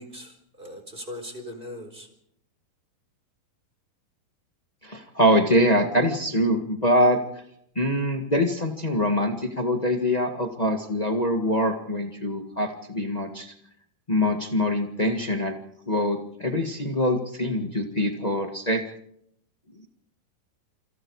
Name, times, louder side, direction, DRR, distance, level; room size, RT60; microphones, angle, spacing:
voice 1, 0.0-2.1, left 1 dB, 15° right, 6 dB, 3.9 m, -39 dB
voice 2, 4.8-7.2 7.7-13.5 14.1-15.6 15.9-18.8, equal, 50° left, 4 dB, 0.4 m, -24 dB
28.0 x 26.0 x 4.9 m, 0.76 s
omnidirectional pair, 4.2 m